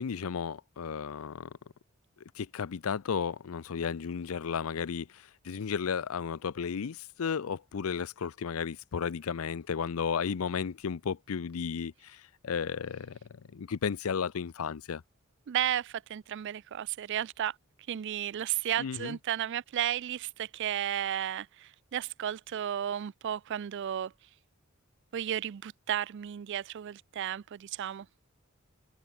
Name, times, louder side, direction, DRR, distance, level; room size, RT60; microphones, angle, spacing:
voice 1, 0.0-1.5 2.4-13.2 13.5-15.0 18.8-19.2, left 6 dB, 85° left, 0.5 m, -34 dB
voice 2, 15.5-17.6 17.9-24.1 25.1-28.1, right 10 dB, 60° right, 0.4 m, -33 dB
head